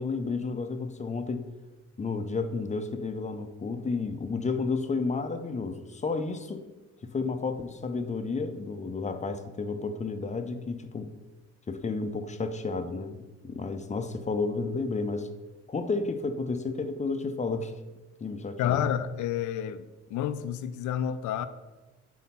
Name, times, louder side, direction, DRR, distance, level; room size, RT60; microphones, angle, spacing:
voice 1, 0.0-1.5 2.0-6.7 7.0-11.1 11.7-15.3 15.7-17.8 18.2-18.8, left 4 dB, 25° left, 0.5 m, -31 dB
voice 2, 18.6-21.5, left 9 dB, 75° left, 0.5 m, -29 dB
4.2 x 4.1 x 5.5 m
cardioid pair, 90°, 30 cm